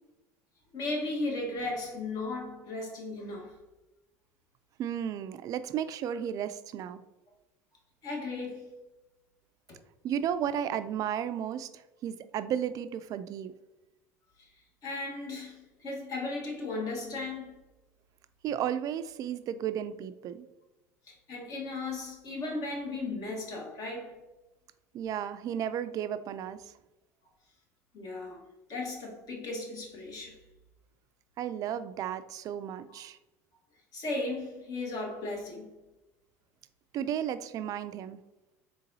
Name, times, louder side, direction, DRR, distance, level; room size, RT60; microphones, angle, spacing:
voice 1, 0.7-3.6 8.0-8.7 14.4-14.5 14.8-17.6 21.1-24.2 27.9-28.4 28.7-30.4 32.9-33.0 33.9-35.7, left 2 dB, 50° left, 1.4 m, -36 dB
voice 2, 4.8-7.0 10.0-13.5 18.4-20.5 24.9-26.6 31.4-33.2 36.9-38.2, right 9 dB, 45° right, 0.3 m, -33 dB
3.9 x 3.7 x 2.7 m
hypercardioid pair, 85°, 8 cm